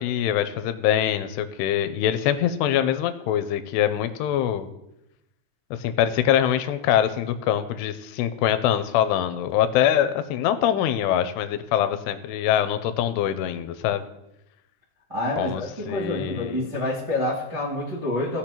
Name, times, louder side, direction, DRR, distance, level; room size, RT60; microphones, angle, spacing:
voice 1, 0.0-4.7 5.8-14.0 15.4-15.6 15.9-16.6, left 10 dB, 85° left, 10 dB, 2.7 m, -24 dB
voice 2, 15.1-18.4, left 1 dB, 50° right, -8 dB, 0.4 m, -27 dB
16.5 x 6.5 x 2.9 m, 0.87 s
omnidirectional pair, 4.8 m